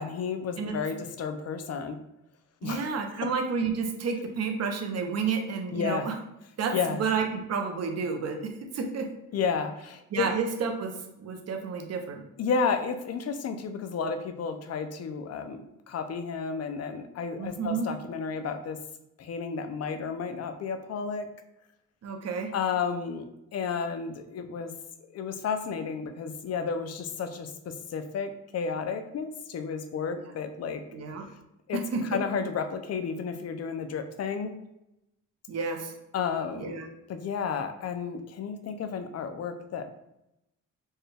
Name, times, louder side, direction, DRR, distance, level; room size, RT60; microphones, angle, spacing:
voice 1, 0.0-2.0 2.6-2.8 3.2-3.3 5.7-6.1 6.7-7.0 9.3-10.3 12.4-18.8 19.2-21.3 22.5-24.7 25.1-30.8 31.7-34.5 36.1-36.8 37.1-39.9, left 6 dB, 50° left, 7 dB, 0.5 m, -32 dB
voice 2, 2.6-6.1 6.6-9.1 10.1-10.9 11.2-12.2 17.4-17.9 22.0-22.5 30.9-31.3 31.9-32.0 35.5-35.9 36.6-36.9, right 5 dB, 50° right, 3 dB, 0.7 m, -30 dB
4.4 x 2.2 x 3.3 m, 0.87 s
cardioid pair, 125°, 32 cm